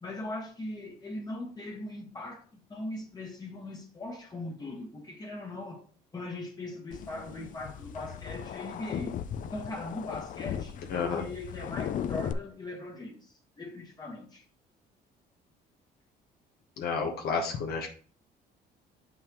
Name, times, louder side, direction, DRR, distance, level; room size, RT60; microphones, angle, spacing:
voice 1, 0.0-5.8 6.1-9.2 9.4-14.4, left 2 dB, 25° left, 1.3 m, -40 dB
sound 1, 6.9-12.3, left 9 dB, 50° left, 0.5 m, -37 dB
voice 2, 10.9-11.2 16.8-17.9, left 5 dB, 65° left, 1.2 m, -30 dB
6.9 x 5.6 x 3.0 m
cardioid pair, 110°, 17 cm